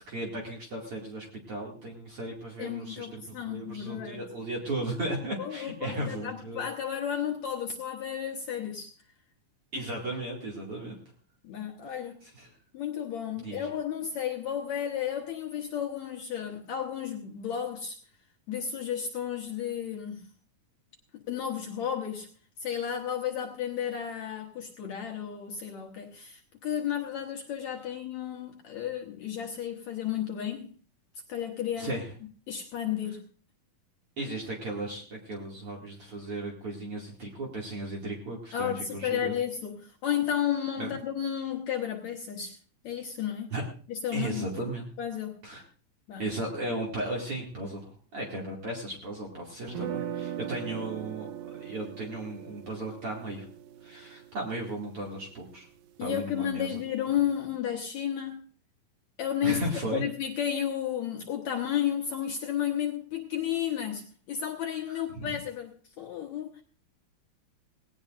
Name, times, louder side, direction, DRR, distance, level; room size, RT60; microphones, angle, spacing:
voice 1, 0.0-6.6 9.7-11.0 12.2-12.5 13.4-13.7 31.8-32.1 34.2-39.3 40.8-40.9 43.5-43.6 44.1-44.9 45.4-45.6 46.2-53.5 53.8-55.7 56.0-56.8 59.4-60.0 65.1-65.4, right 1 dB, 45° right, -2 dB, 3.0 m, -36 dB
voice 2, 2.6-4.2 5.4-8.9 9.8-9.9 11.4-12.2 12.7-18.0 18.5-20.3 21.3-22.3 22.6-30.7 31.3-32.0 32.5-33.2 38.5-42.6 42.8-43.5 43.9-44.5 45.0-45.4 46.1-46.3 56.0-58.4 59.2-59.6 59.9-66.6, left 9 dB, 65° left, 1 dB, 2.2 m, -32 dB
sound 1, 49.7-55.7, right 10 dB, 90° right, 2.6 m, -40 dB
19.0 x 17.5 x 2.5 m, 0.41 s
omnidirectional pair, 4.0 m